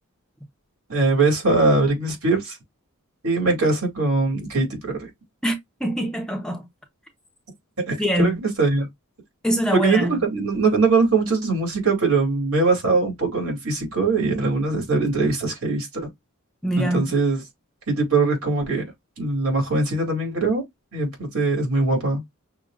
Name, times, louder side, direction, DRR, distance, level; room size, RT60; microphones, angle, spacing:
voice 1, 0.9-2.6 3.2-5.1 7.9-8.9 9.7-16.1 16.8-17.4 17.9-18.8 19.2-20.6 20.9-22.2, right 3 dB, 70° right, 2.3 m, -21 dB
voice 2, 5.4-6.7 8.0-8.4 9.4-10.1 16.6-17.1, equal, 5° left, 0.7 m, -24 dB
6.2 x 2.3 x 2.4 m
head